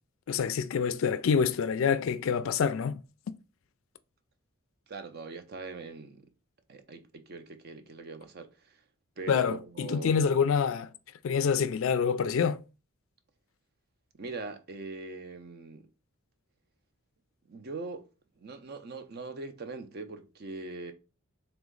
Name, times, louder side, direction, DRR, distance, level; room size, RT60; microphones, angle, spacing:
voice 1, 0.3-3.0 9.3-10.9 11.2-12.6, left 6 dB, 60° left, 0.3 m, -26 dB
voice 2, 4.9-6.3 6.7-8.8 9.2-10.4 14.1-15.9 17.5-18.1 18.4-20.9, right 3 dB, 45° right, 0.5 m, -41 dB
3.4 x 3.0 x 3.7 m
head